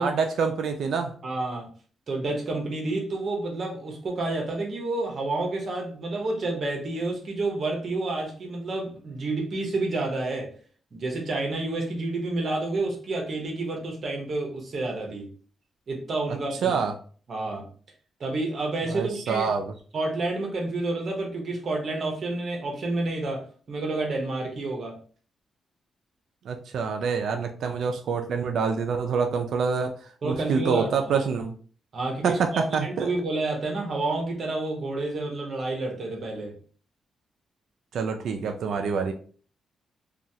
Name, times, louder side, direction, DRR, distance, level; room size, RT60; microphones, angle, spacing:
voice 1, 0.0-1.1 16.6-16.9 18.9-19.7 26.5-30.0 30.2-31.5 32.2-33.1 37.9-39.1, right 5 dB, 70° right, 5 dB, 0.3 m, -26 dB
voice 2, 1.2-1.7 2.1-10.5 10.9-15.3 15.9-16.8 17.3-17.7 18.2-19.5 19.9-25.0 30.2-31.1 31.9-36.5, right 2 dB, 45° right, 0 dB, 0.8 m, -29 dB
3.0 x 2.3 x 2.7 m, 0.42 s
wide cardioid pair, 155°, 0 cm